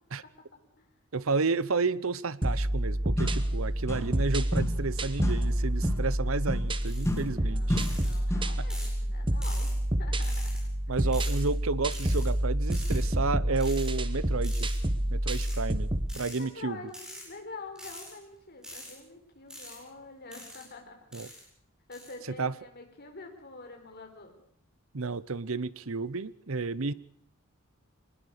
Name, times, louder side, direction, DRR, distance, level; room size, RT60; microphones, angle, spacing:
voice 1, 1.1-7.8 10.9-14.7 15.1-16.8 21.1-21.3 22.4-22.5 24.9-26.9, right 4 dB, 65° right, 0.9 m, -31 dB
chilling trap beat, 2.4-16.1, right 1 dB, 25° right, 1.2 m, -28 dB
sound 1, 2.8-2.9 3.2-4.3 4.5-8.6, left 1 dB, 15° left, 2.2 m, -34 dB
sound 2, 6.9-7.2 7.8-8.2 8.7-9.0 9.4-9.7 10.2-10.6 11.1-11.4 11.9-12.3 12.7-13.0 13.6-13.9 14.4-14.8 15.3-15.6 16.1-16.4 16.9-17.2 17.8-18.1 18.6-18.9 19.5-19.8 20.3-20.6 21.1-21.4 21.9-22.1, equal, 5° right, 7.7 m, -44 dB
voice 2, 7.1-10.6 10.9-11.0 16.4-21.5 21.9-24.4, left 3 dB, 50° left, 4.6 m, -47 dB
23.5 x 20.0 x 6.7 m
head